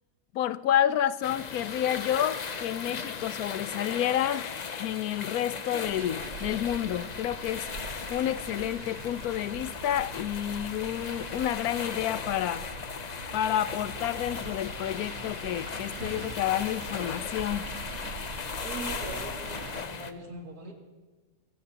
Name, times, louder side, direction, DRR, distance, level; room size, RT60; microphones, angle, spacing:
voice 1, 0.3-7.7 8.1-12.6 13.3-17.6, left 11 dB, 85° left, 1.1 m, -29 dB
sound 1, 1.2-20.1, left 6 dB, 45° left, 0.5 m, -37 dB
sound 2, 5.8-19.8, right 5 dB, 70° right, 1.4 m, -43 dB
voice 2, 18.6-20.7, right 2 dB, 90° right, 3.0 m, -41 dB
24.5 x 16.0 x 2.9 m
omnidirectional pair, 1.5 m